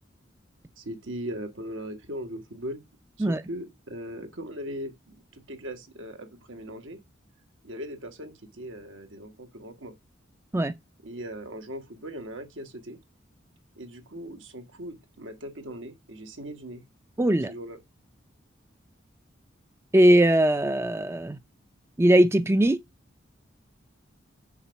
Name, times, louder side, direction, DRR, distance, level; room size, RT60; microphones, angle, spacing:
voice 1, 0.8-2.8 3.2-7.0 7.6-10.0 11.0-13.0 13.8-16.8 17.5-17.8, equal, 85° right, 1.6 m, -39 dB
voice 2, 17.2-17.5 19.9-21.4 22.0-22.8, right 1 dB, 15° right, 0.4 m, -20 dB
7.1 x 5.3 x 5.8 m
head